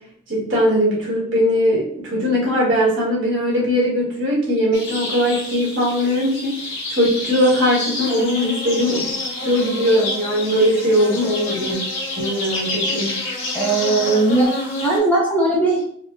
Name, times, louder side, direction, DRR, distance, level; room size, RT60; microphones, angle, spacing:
voice 1, 0.3-6.6 6.9-9.2 9.4-11.8 12.2-13.2, equal, 60° right, -5 dB, 1.4 m, -20 dB
sound 1, 4.7-15.0, left 2 dB, 60° left, 0.9 m, -28 dB
voice 2, 13.5-14.5 14.8-15.9, right 2 dB, 10° left, -3 dB, 0.5 m, -18 dB
4.4 x 2.1 x 2.5 m, 0.64 s
head